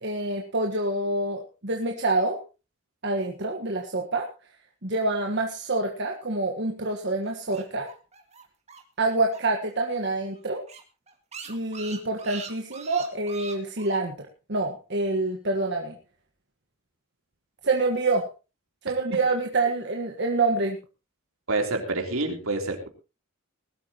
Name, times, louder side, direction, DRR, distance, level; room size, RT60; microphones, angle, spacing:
voice 1, 0.0-2.4 3.0-4.3 4.8-7.9 9.0-10.6 11.5-16.0 17.6-18.3 18.8-20.8, right 2 dB, 50° right, 2 dB, 1.5 m, -27 dB
sound 1, 7.2-9.7 10.0-10.1 10.4-10.5 10.7-14.0, right 6 dB, 30° right, 2.0 m, -42 dB
voice 2, 21.5-22.9, right 2 dB, 75° right, 4 dB, 3.4 m, -27 dB
20.0 x 12.5 x 3.0 m, 0.31 s
head